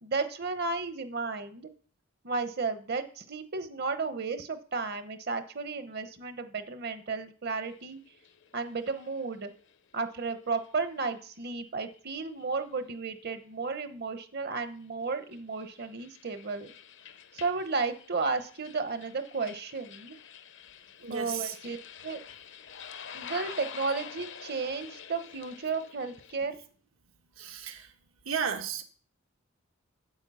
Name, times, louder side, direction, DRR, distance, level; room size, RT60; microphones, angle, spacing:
voice 1, 0.0-1.7 2.2-8.0 8.5-9.5 9.9-16.7 17.3-20.2 21.1-21.8 22.0-22.2 23.1-26.6, right 4 dB, 50° right, 10 dB, 1.0 m, -33 dB
sound 1, 7.5-10.2 10.6-10.7 11.7-12.0 12.2-12.5 14.8-26.4, left 7 dB, 60° left, 0.7 m, -48 dB
voice 2, 21.0-21.6 27.4-27.9 28.2-28.8, right 7 dB, 80° right, 6 dB, 1.3 m, -34 dB
9.0 x 7.9 x 5.6 m, 0.43 s
head